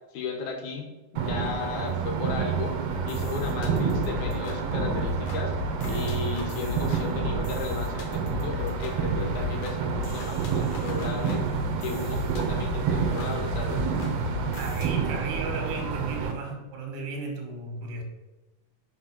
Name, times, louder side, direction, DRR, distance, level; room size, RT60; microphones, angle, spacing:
voice 1, 0.1-2.8 3.0-5.5 5.9-11.5 11.8-13.9, left 5 dB, 90° left, 2 dB, 2.3 m, -35 dB
sound 1, 1.2-16.3, right 6 dB, 70° right, 1.6 m, -29 dB
sound 2, 2.9-14.9, left 5 dB, 65° left, 2.0 m, -36 dB
voice 2, 14.6-18.0, right 4 dB, 90° right, 2 dB, 2.7 m, -35 dB
5.2 x 5.1 x 5.7 m, 1.1 s
omnidirectional pair, 3.4 m